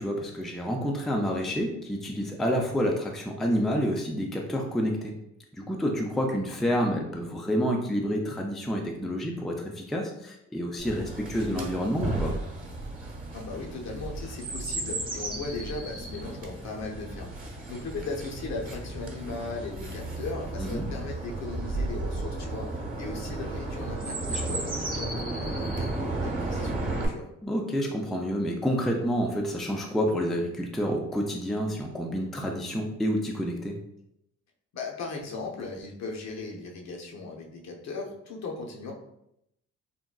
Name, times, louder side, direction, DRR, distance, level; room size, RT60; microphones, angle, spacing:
voice 1, 0.0-5.1 5.5-12.4 20.6-20.9 24.3-24.6 27.4-33.8, equal, ahead, 1 dB, 0.3 m, -29 dB
Chirp tweet, 10.8-27.1, right 2 dB, 30° right, 0.9 m, -34 dB
voice 2, 13.3-27.2 34.7-38.9, left 3 dB, 60° left, 0 dB, 0.7 m, -37 dB
3.7 x 2.2 x 2.3 m, 0.79 s
cardioid pair, 90°, 30 cm